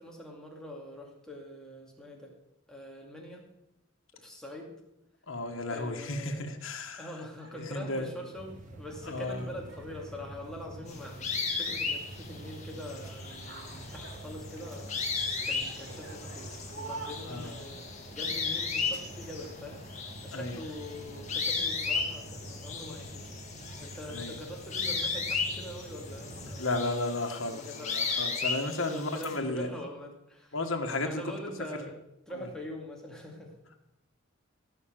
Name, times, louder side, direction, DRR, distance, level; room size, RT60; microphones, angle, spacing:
voice 1, 0.0-2.3 2.7-3.4 4.1-4.7 5.6-6.4 7.0-23.3 23.8-26.8 27.4-28.1 28.8-30.6 31.0-31.9 32.3-33.5, left 1 dB, 5° left, -1 dB, 2.4 m, -44 dB
voice 2, 5.3-7.1 7.7-8.1 9.1-9.5 17.3-17.5 20.3-20.6 24.1-24.3 26.6-29.7 30.5-31.2 32.4-32.5, left 2 dB, 70° left, 4 dB, 1.5 m, -33 dB
sound 1, 6.5-25.7, right 3 dB, 55° right, 2.5 m, -52 dB
sound 2, 8.3-26.6, right 1 dB, 35° right, 1.2 m, -47 dB
sound 3, 10.9-29.4, left 4 dB, 35° left, 2.1 m, -35 dB
16.5 x 5.9 x 7.5 m, 0.86 s
head